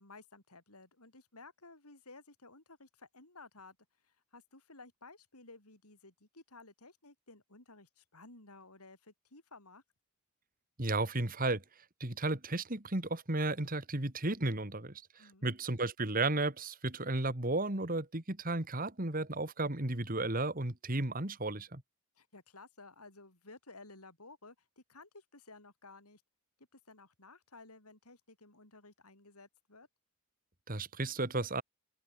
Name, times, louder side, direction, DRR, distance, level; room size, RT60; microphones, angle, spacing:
voice 1, 0.0-3.8 4.3-9.8 15.2-15.5 22.2-26.2 26.6-29.9, left 3 dB, 85° left, 6.9 m, -55 dB
voice 2, 10.8-11.6 12.0-21.8 30.7-31.6, right 2 dB, 40° right, 2.3 m, -34 dB
head